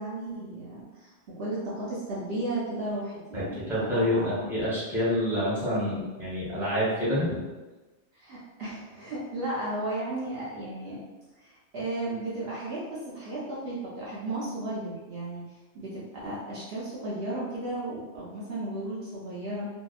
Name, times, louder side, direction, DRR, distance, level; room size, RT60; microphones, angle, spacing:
voice 1, 0.0-4.5 8.1-11.0 11.4-19.7, right 2 dB, 60° right, -7 dB, 0.8 m, -34 dB
voice 2, 3.3-7.4, left 1 dB, ahead, -9 dB, 0.8 m, -27 dB
2.7 x 2.2 x 2.3 m, 1.2 s
omnidirectional pair, 1.2 m